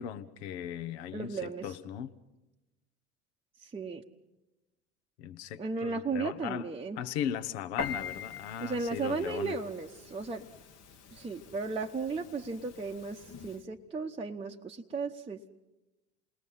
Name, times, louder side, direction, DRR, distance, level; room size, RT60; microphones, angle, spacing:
voice 1, 0.0-2.1 5.2-6.7 7.0-9.5, left 9 dB, 65° left, 1.1 m, -38 dB
voice 2, 1.1-1.6 3.6-4.0 5.6-7.0 8.6-10.5 11.1-15.5, right 4 dB, 15° right, 0.9 m, -35 dB
Piano, 7.8-13.6, left 6 dB, 45° left, 1.4 m, -43 dB
28.5 x 20.5 x 5.5 m
hypercardioid pair, 70°, 35 cm